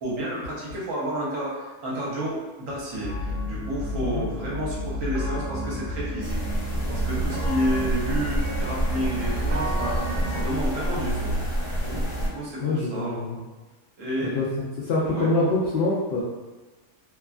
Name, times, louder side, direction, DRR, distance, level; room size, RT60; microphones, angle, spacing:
voice 1, 0.0-6.4 6.9-11.4 12.2-13.2 14.0-14.4 15.1-15.3, right 1 dB, 65° right, -6 dB, 1.1 m, -30 dB
sound 1, 3.0-10.4, equal, 90° right, 0.5 m, -31 dB
sound 2, 6.2-12.3, equal, 50° left, 0.7 m, -28 dB
voice 2, 12.6-13.4 14.2-14.5 14.8-16.2, left 2 dB, 90° left, -6 dB, 0.5 m, -25 dB
2.7 x 2.3 x 2.3 m, 1.2 s
omnidirectional pair, 1.6 m